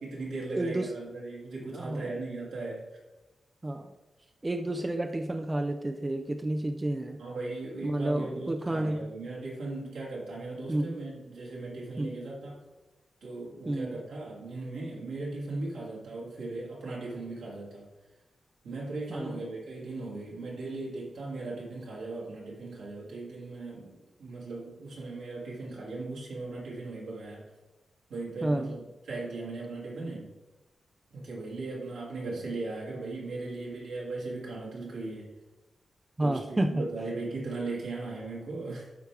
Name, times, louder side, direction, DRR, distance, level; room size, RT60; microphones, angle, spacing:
voice 1, 0.0-2.9 7.2-12.6 13.2-17.9 18.6-27.5 28.1-30.3 31.1-35.3 36.2-38.9, right 2 dB, 80° right, -5 dB, 2.6 m, -38 dB
voice 2, 0.5-0.9 1.7-2.1 3.6-3.9 4.4-7.2 7.8-9.1 10.7-11.0 12.0-12.2 13.6-14.0 19.1-19.3 28.4-28.7 36.2-36.9, right 1 dB, 30° right, 6 dB, 0.6 m, -30 dB
12.0 x 4.6 x 3.5 m, 1.1 s
supercardioid pair, 40°, 0 cm